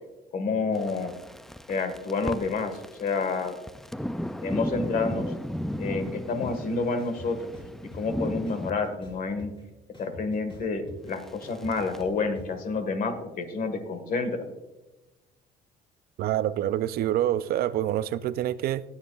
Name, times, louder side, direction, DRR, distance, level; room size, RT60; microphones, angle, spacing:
voice 1, 0.3-1.1 1.7-3.6 4.4-5.3 5.8-7.4 7.9-9.5 10.0-14.5, left 4 dB, 55° left, 8 dB, 1.6 m, -29 dB
sound 1, 0.7-8.7 11.1-12.0, equal, ahead, 0.3 m, -35 dB
sound 2, 6.4-6.5 7.0-8.0 8.5-9.6 9.9-12.5, left 1 dB, 30° left, 4.0 m, -44 dB
voice 2, 16.2-18.8, right 12 dB, 65° right, 15 dB, 0.4 m, -26 dB
19.5 x 7.2 x 2.4 m, 1.1 s
cardioid pair, 110°, 17 cm